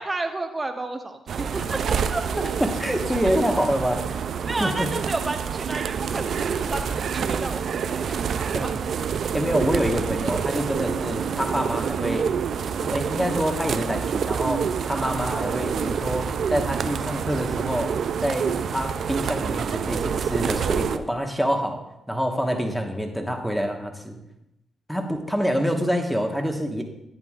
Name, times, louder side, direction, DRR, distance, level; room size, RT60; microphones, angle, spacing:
voice 1, 0.0-2.2 4.5-8.7 14.9-15.5 22.4-22.6, right 2 dB, 25° right, 5 dB, 1.1 m, -32 dB
sound 1, 1.3-21.0, right 7 dB, 65° right, 0.4 m, -27 dB
voice 2, 2.8-4.2 4.6-4.9 8.5-8.6 9.3-12.3 12.8-17.9 18.2-21.8 22.1-24.2 24.9-26.8, equal, ahead, 3 dB, 1.4 m, -26 dB
10.5 x 8.9 x 2.5 m, 0.86 s
supercardioid pair, 60°, 0 cm